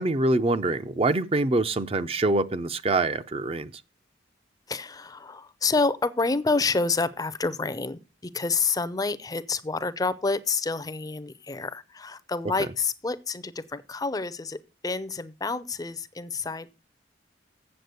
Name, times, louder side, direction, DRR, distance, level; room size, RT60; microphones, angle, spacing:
voice 1, 0.0-3.7, right 2 dB, 30° right, 0.5 m, -25 dB
voice 2, 4.7-16.7, left 4 dB, 20° left, 0.5 m, -28 dB
7.9 x 7.4 x 6.7 m
head